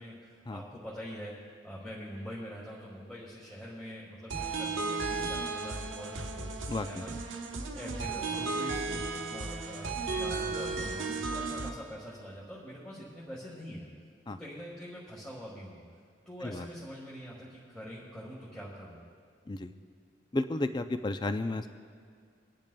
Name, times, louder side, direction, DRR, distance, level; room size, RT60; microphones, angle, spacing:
voice 1, 0.0-1.3 1.6-6.5 6.8-7.2 7.6-13.8 14.3-15.8 16.2-19.0, equal, 5° left, -7 dB, 1.5 m, -44 dB
sound 1, 4.3-11.7, right 3 dB, 80° right, 0.9 m, -34 dB
voice 2, 6.7-7.0 14.3-14.4 16.4-16.7 19.5-19.7 20.3-21.7, left 2 dB, 20° left, 9 dB, 0.3 m, -32 dB
24.5 x 10.5 x 2.3 m, 2.1 s
head